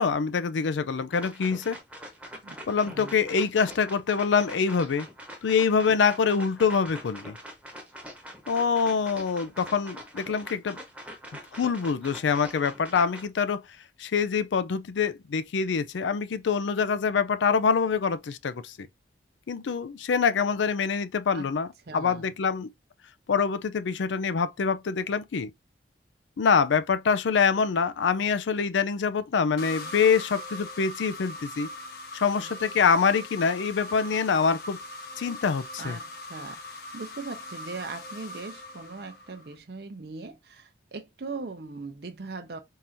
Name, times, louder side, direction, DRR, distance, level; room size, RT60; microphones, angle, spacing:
voice 1, 0.0-1.8 2.7-5.1 5.4-7.4 8.5-10.8 11.6-13.6 14.0-18.8 19.5-21.7 21.9-22.7 23.3-25.5 26.4-31.7 32.1-34.8 35.2-36.0, left 6 dB, 85° left, 0.4 m, -25 dB
sound 1, 1.1-13.3, equal, 5° right, 0.9 m, -44 dB
voice 2, 2.4-3.1 21.3-21.5 21.9-22.3 32.4-32.5 35.8-42.6, right 3 dB, 60° right, 0.6 m, -40 dB
sound 2, 29.6-39.5, left 1 dB, 55° left, 0.8 m, -41 dB
3.8 x 2.6 x 4.3 m
head